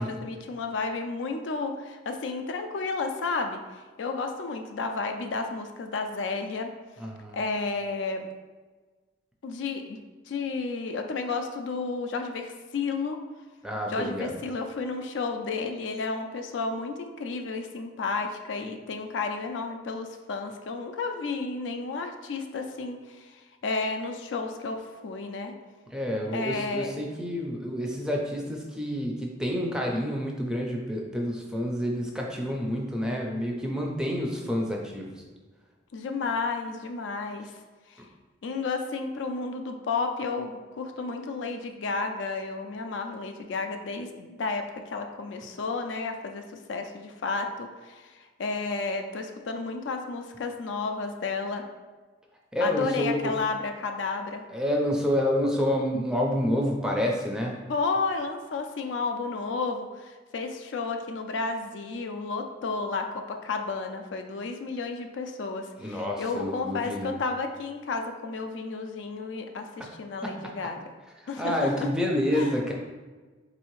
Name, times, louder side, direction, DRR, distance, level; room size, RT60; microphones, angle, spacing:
voice 1, 0.0-3.6 4.0-6.7 7.3-8.3 9.4-10.0 10.3-13.2 13.9-23.3 23.6-25.5 26.3-26.9 35.9-37.5 37.9-38.0 38.4-46.4 46.7-51.6 52.6-54.4 57.7-70.8 71.3-71.9 72.3-72.6, left 4 dB, 85° left, 5 dB, 0.4 m, -32 dB
voice 2, 7.0-7.4 13.6-14.3 25.9-35.2 52.5-53.4 54.5-57.6 65.8-67.2 70.2-70.3 71.2-72.7, equal, 5° right, -1 dB, 0.4 m, -28 dB
4.1 x 2.7 x 3.0 m, 1.3 s
head